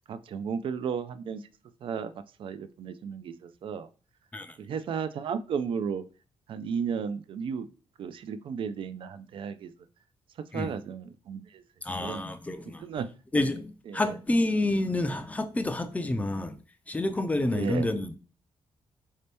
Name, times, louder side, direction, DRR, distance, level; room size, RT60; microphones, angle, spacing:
voice 1, 0.1-1.4 1.8-2.1 2.4-3.9 4.6-6.0 6.5-7.7 8.0-9.7 10.5-11.6 12.0-12.2 12.8-13.1 13.9-14.1 17.5-17.9, right 6 dB, 55° right, 0.4 m, -34 dB
voice 2, 11.8-13.0 13.3-16.6 16.9-18.2, left 2 dB, 15° left, 0.4 m, -29 dB
4.2 x 2.8 x 3.3 m
cardioid pair, 105°, 10 cm